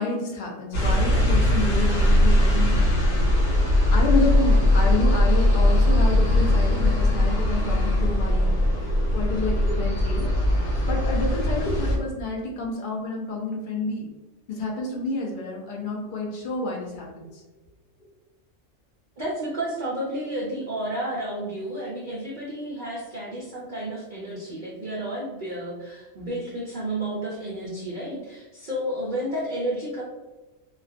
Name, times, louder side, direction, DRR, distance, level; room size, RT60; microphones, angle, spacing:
voice 1, 0.0-3.4 3.9-8.5 8.8-10.3 10.6-14.1 14.5-17.4, left 2 dB, 60° left, -1 dB, 0.5 m, -29 dB
sound 1, 0.7-12.0, left 1 dB, 85° left, 1.0 m, -20 dB
voice 2, 19.2-30.0, right 1 dB, 60° right, -6 dB, 0.5 m, -31 dB
2.3 x 2.2 x 2.4 m, 1.1 s
omnidirectional pair, 1.4 m